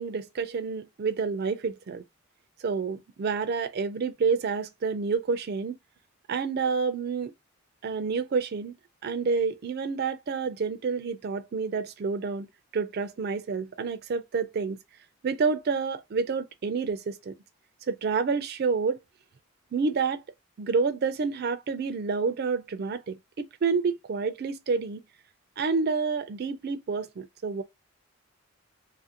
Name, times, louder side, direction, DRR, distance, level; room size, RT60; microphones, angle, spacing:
voice 1, 0.0-2.0 2.6-5.8 6.3-7.3 7.8-8.8 9.0-12.5 12.7-14.8 15.2-17.3 17.9-19.0 19.7-20.2 20.6-25.0 25.6-27.6, right 5 dB, 50° right, 0.4 m, -28 dB
2.6 x 2.5 x 2.7 m
head